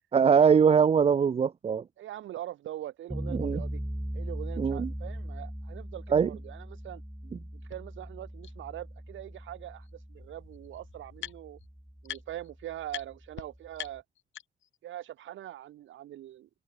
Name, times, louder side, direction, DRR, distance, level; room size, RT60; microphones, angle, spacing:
voice 1, 0.0-1.8 3.3-3.6 4.6-4.9 6.1-6.3, right 6 dB, 30° right, 0.5 m, -22 dB
voice 2, 2.0-3.8 4.1-7.0 7.5-11.6 12.0-14.0 14.8-16.5, right 13 dB, 75° right, 1.6 m, -42 dB
sound 1, 3.1-14.0, equal, ahead, 1.4 m, -40 dB
sound 2, 7.7-7.8 8.4-8.5 9.8-9.9 10.2-11.7 12.0-12.5 12.9-13.1 13.4-13.5 13.8-14.8, left 12 dB, 75° left, 3.5 m, -43 dB
open air
cardioid pair, 90°, 20 cm